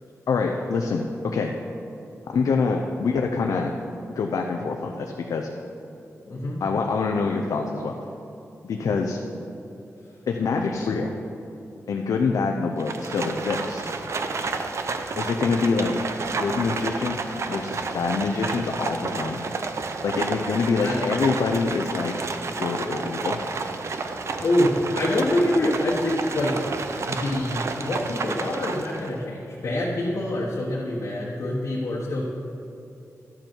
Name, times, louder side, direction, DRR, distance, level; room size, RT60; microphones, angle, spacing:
voice 1, 0.3-1.5 2.3-3.8 4.2-5.5 6.6-7.9 8.6-9.2 10.3-11.1 11.9-13.9 15.2-15.9 16.4-19.4 20.0-22.1 22.6-23.4, left 4 dB, 80° left, 2 dB, 0.6 m, -25 dB
voice 2, 6.2-6.6 20.8-21.0 24.4-26.6 27.1-32.2, left 1 dB, 60° left, -5 dB, 1.2 m, -25 dB
Livestock farm animals working animals, 12.8-29.2, right 4 dB, 55° right, 0.6 m, -31 dB
11.5 x 7.8 x 4.5 m, 2.8 s
wide cardioid pair, 140°, 6 cm